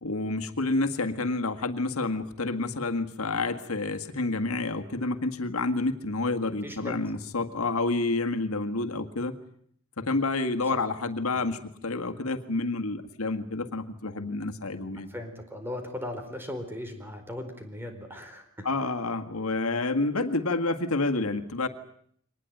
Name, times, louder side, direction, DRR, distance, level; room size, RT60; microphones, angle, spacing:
voice 1, 0.0-9.3 10.0-15.1 18.6-21.7, left 3 dB, 90° left, 7 dB, 1.9 m, -29 dB
voice 2, 6.6-6.9 10.7-10.8 11.3-11.5 15.0-18.7, left 1 dB, 10° right, 6 dB, 4.4 m, -38 dB
24.0 x 19.5 x 9.4 m, 0.65 s
head